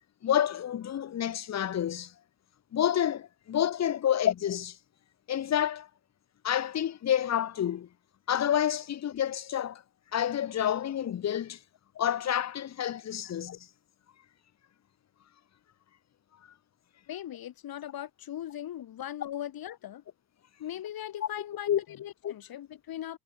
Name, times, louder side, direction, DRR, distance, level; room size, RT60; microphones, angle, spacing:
voice 1, 0.2-2.1 2.7-4.8 5.3-5.9 6.4-7.9 8.3-9.8 10.1-11.6 12.0-13.6 21.2-21.3 21.7-21.8 22.2-22.3, left 10 dB, 40° left, 0.8 m, -28 dB
voice 2, 17.1-20.0 20.6-23.2, left 11 dB, 60° left, 1.7 m, -39 dB
hypercardioid pair, 45°, 40 cm